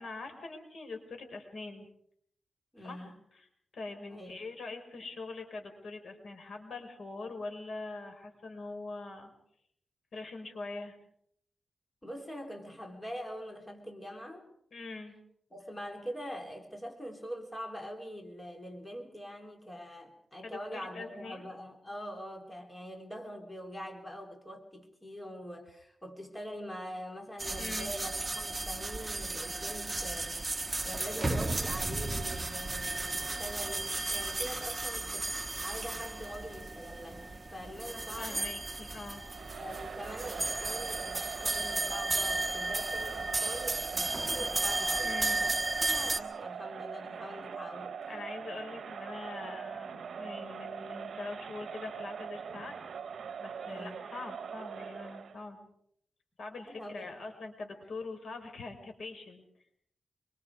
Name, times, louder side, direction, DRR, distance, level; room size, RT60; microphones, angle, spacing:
voice 1, 0.0-1.9 2.8-3.5 3.7-9.3 10.1-11.0 14.7-15.2 20.4-21.4 27.6-27.9 38.2-39.2 45.0-45.4 48.1-52.9 53.4-55.6 56.4-59.4, left 3 dB, 75° left, 5 dB, 4.9 m, -43 dB
voice 2, 2.7-3.1 4.1-4.4 12.0-14.5 15.5-30.5 30.8-38.5 39.4-48.0 53.6-54.1 56.7-57.1, equal, 15° left, 2 dB, 3.6 m, -44 dB
sound 1, 27.4-46.2, right 2 dB, 25° right, 1.4 m, -34 dB
Crowd, 39.3-55.4, right 6 dB, 80° right, 0.8 m, -42 dB
25.5 x 24.0 x 4.9 m, 0.68 s
wide cardioid pair, 105°, 0 cm